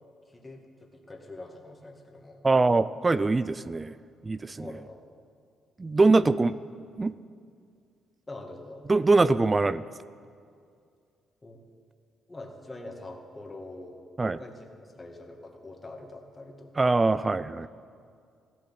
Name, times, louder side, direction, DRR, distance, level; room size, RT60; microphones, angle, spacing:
voice 1, 0.3-2.4 4.6-5.0 6.1-6.4 8.3-8.8 11.4-11.6 12.3-14.0 14.4-17.1 17.6-17.7, left 2 dB, 20° left, 1 dB, 2.2 m, -44 dB
voice 2, 2.4-4.0 4.2-4.7 5.8-6.5 7.0-7.1 8.9-9.8 14.2-14.4 16.8-17.7, right 3 dB, 25° right, 15 dB, 0.4 m, -23 dB
15.0 x 12.0 x 7.7 m, 2.3 s
cardioid pair, 90°, 0 cm